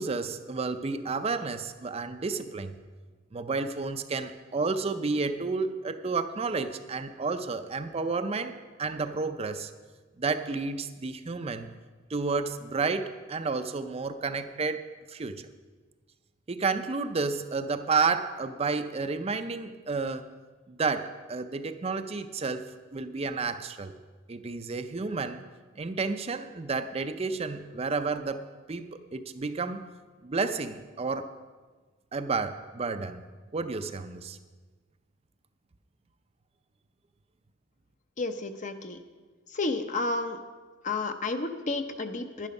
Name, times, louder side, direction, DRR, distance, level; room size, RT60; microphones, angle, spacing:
voice 1, 0.0-2.7 3.3-9.7 10.2-11.7 12.1-15.4 16.5-20.3 20.7-22.6 22.9-23.9 24.3-25.4 25.8-28.4 28.7-29.9 30.2-31.3 32.1-33.2 33.5-34.4, right 4 dB, 30° right, 9 dB, 0.5 m, -31 dB
voice 2, 38.2-39.0 39.5-40.4 40.8-42.5, left 3 dB, 40° left, 8 dB, 0.7 m, -31 dB
11.0 x 10.5 x 5.4 m, 1.4 s
head